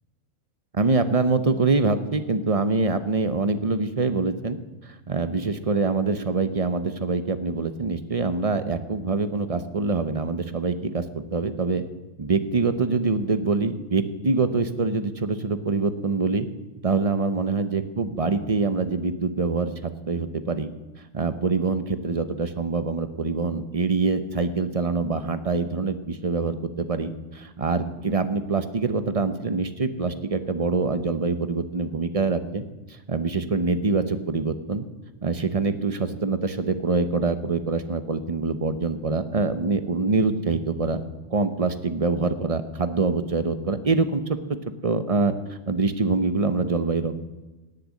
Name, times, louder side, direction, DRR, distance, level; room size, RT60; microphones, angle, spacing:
voice 1, 0.7-11.8 12.2-16.5 16.8-20.7 21.1-32.6 32.9-34.8 35.2-41.0 41.3-44.4 44.8-45.3 45.7-47.1, right 4 dB, 30° right, 11 dB, 0.8 m, -25 dB
18.5 x 6.8 x 8.5 m, 1.2 s
omnidirectional pair, 1.5 m